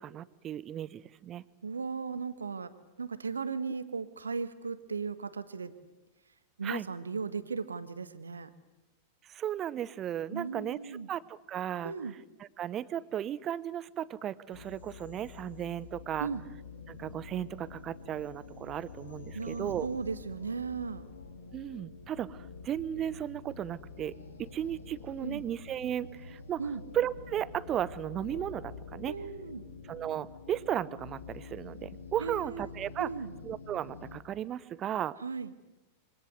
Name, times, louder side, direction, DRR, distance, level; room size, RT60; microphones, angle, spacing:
voice 1, 0.0-1.4 6.6-6.9 9.3-11.9 12.6-16.3 16.9-19.9 21.5-26.6 26.9-29.1 29.9-33.1 33.4-35.2, right 10 dB, 30° right, 19 dB, 0.8 m, -35 dB
voice 2, 1.6-2.7 3.0-5.7 6.6-8.5 10.3-11.1 11.8-12.1 16.2-16.4 19.3-21.1 25.2-25.5 26.6-26.8 29.1-29.7 32.2-33.3 35.2-35.5, right 5 dB, 75° right, 13 dB, 1.4 m, -37 dB
sound 1, 14.5-34.2, left 4 dB, 70° left, 2.4 m, -47 dB
26.0 x 24.0 x 7.9 m, 1.0 s
figure-of-eight pair, 90°, 0 cm